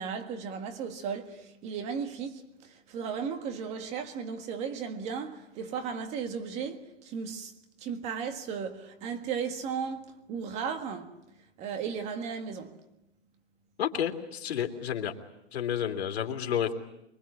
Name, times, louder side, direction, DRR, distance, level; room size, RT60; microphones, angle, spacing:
voice 1, 0.0-7.5 7.8-11.2 11.6-12.8, right 6 dB, 20° right, 1.7 m, -35 dB
voice 2, 13.8-15.1 15.5-16.7, left 9 dB, 75° left, 3.2 m, -30 dB
25.5 x 23.0 x 8.7 m
hypercardioid pair, 165°, 32 cm